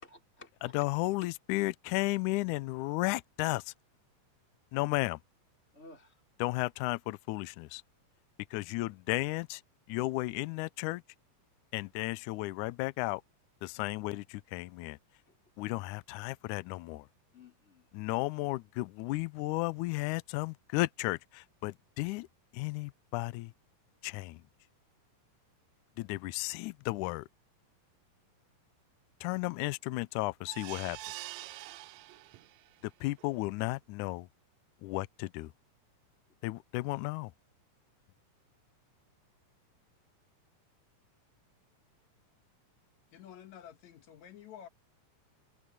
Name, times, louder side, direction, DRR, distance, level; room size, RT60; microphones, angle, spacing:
voice 1, 0.0-0.9 1.2-1.3 5.7-6.2 15.3-15.4 17.3-17.9, left 3 dB, 20° left, 4.3 m, -54 dB
voice 2, 0.7-3.7 4.7-5.2 6.4-7.8 8.5-9.6 9.9-11.0 11.7-13.2 13.6-15.0 15.6-17.1 17.9-22.3 22.5-23.5 24.0-24.4 26.0-27.3 29.2-31.0 33.0-34.3 34.8-35.5 36.4-37.3, left 21 dB, 80° left, 1.9 m, -34 dB
sound 1, 30.5-32.7 33.2-33.3 33.6-33.7, right 17 dB, 85° right, 1.6 m, -45 dB
voice 3, 43.1-44.7, left 10 dB, 65° left, 2.4 m, -50 dB
omnidirectional pair, 3.9 m